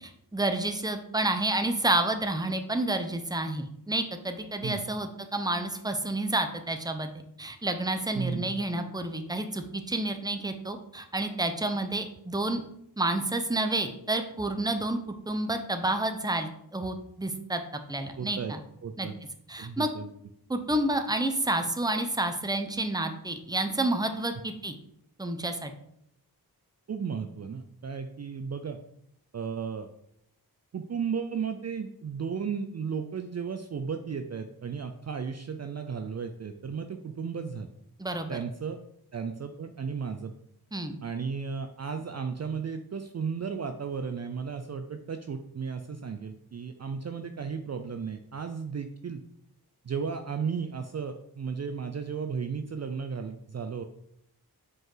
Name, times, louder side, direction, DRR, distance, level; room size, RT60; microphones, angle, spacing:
voice 1, 0.0-7.1 7.4-12.6 13.0-15.0 15.3-17.6 17.9-18.6 19.0-19.1 19.5-19.9 20.5-24.7 25.2-25.7 38.0-38.4 40.7-41.0, right 2 dB, 10° right, 7 dB, 0.7 m, -29 dB
voice 2, 8.1-8.5 18.2-18.5 18.8-19.1 19.6-20.1 26.9-28.8 29.3-29.9 30.7-37.7 38.3-38.8 39.1-40.3 41.0-49.2 49.8-53.8, right 6 dB, 45° right, 7 dB, 0.4 m, -34 dB
5.3 x 4.7 x 3.8 m, 0.74 s
wide cardioid pair, 60°, 39 cm